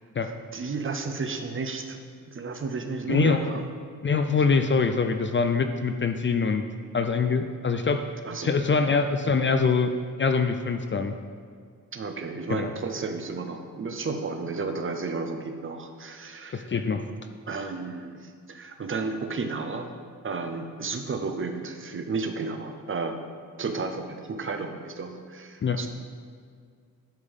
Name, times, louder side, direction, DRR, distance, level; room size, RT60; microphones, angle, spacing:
voice 1, 0.5-2.0 2.3-3.7 4.3-4.6 8.3-8.9 11.9-16.7 17.5-19.9 20.2-23.2 23.6-25.9, right 4 dB, 35° right, 6 dB, 0.7 m, -32 dB
voice 2, 3.1-3.4 4.0-6.6 6.9-8.0 8.4-9.9 10.2-11.2 12.5-12.7 16.5-17.0 25.6-25.9, left 5 dB, 35° left, 7 dB, 0.4 m, -24 dB
10.5 x 5.3 x 5.3 m, 2.1 s
wide cardioid pair, 165°, 34 cm